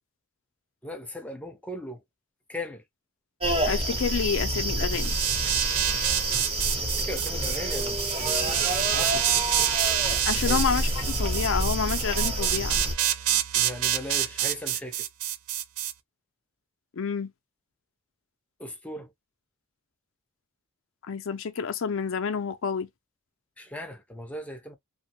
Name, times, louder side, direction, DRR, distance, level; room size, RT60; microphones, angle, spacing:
voice 1, 0.8-2.0 2.5-2.8 6.7-10.6 13.5-15.1 18.6-19.1 23.6-24.8, left 1 dB, 5° left, 0.6 m, -39 dB
sound 1, 3.4-12.9, right 1 dB, 25° right, 0.8 m, -28 dB
voice 2, 3.7-5.2 10.3-12.8 16.9-17.3 21.1-22.9, left 6 dB, 60° left, 0.5 m, -29 dB
sound 2, 4.9-15.9, right 11 dB, 70° right, 0.4 m, -27 dB
3.0 x 2.1 x 2.8 m
head